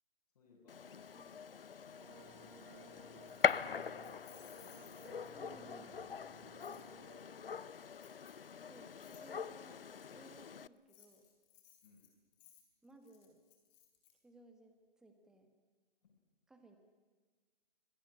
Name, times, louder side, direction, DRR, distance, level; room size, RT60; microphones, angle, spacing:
voice 1, 0.3-0.9 1.8-5.2 7.2-7.8 11.8-12.1 16.0-16.1, left 4 dB, 40° left, -7 dB, 7.3 m, -67 dB
Gunshot gunfire, 0.7-10.7, left 7 dB, 75° left, 0.8 m, -41 dB
voice 2, 1.1-1.5 5.3-6.0 8.6-11.2 12.8-13.4 14.2-15.5 16.5-16.8, right 2 dB, ahead, 6 dB, 1.4 m, -61 dB
sound 1, 2.0-7.2, right 3 dB, 35° right, 5.1 m, -58 dB
Keys jangling, 3.2-5.5 6.6-6.8 7.9-8.5 9.0-9.2 10.7-14.1, left 11 dB, 20° left, 3.7 m, -63 dB
24.5 x 18.0 x 9.9 m, 1.4 s
figure-of-eight pair, 150°, 29 cm